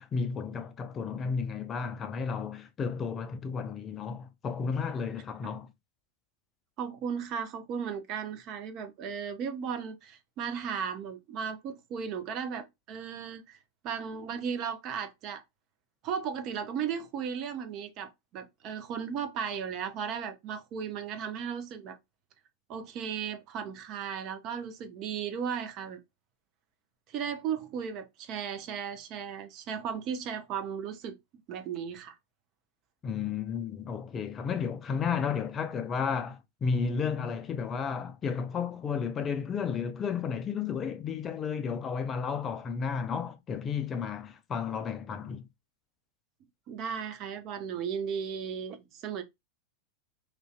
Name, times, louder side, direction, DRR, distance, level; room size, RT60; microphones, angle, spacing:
voice 1, 0.0-5.7 33.0-45.4, left 6 dB, 25° left, 0.3 m, -33 dB
voice 2, 6.8-13.6 13.8-15.4 16.0-22.0 22.7-26.0 27.1-31.2 31.5-32.1 46.7-49.2, right 7 dB, 40° right, 0.5 m, -36 dB
2.5 x 2.1 x 2.3 m
figure-of-eight pair, 90°, 0 cm